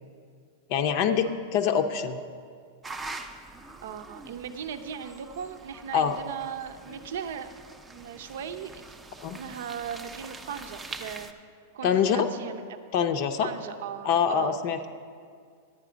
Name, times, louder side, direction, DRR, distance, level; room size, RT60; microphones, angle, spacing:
voice 1, 0.7-2.2 5.9-6.2 9.2-9.4 11.8-12.3 12.9-13.5 14.0-14.9, left 7 dB, 45° left, 6 dB, 0.6 m, -25 dB
sound 1, 2.8-11.3, right 3 dB, 10° right, 0.5 m, -44 dB
voice 2, 3.8-7.5 7.9-9.0 9.3-11.3 11.7-12.6 13.4-14.6, right 8 dB, 75° right, 9 dB, 0.6 m, -38 dB
11.0 x 8.7 x 5.1 m, 2.1 s
supercardioid pair, 150°, 0 cm